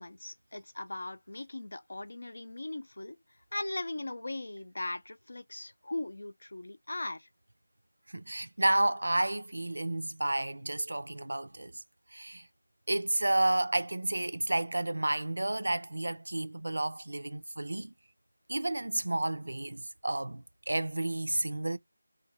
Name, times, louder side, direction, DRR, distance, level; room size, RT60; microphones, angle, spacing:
voice 1, 0.0-3.2 3.5-7.3, left 2 dB, 70° left, 0.5 m, -39 dB
voice 2, 8.1-11.8 12.1-12.5 12.9-17.9 18.5-21.8, right 1 dB, 90° right, 0.4 m, -31 dB
2.5 x 2.2 x 3.0 m
figure-of-eight pair, 175°, 0 cm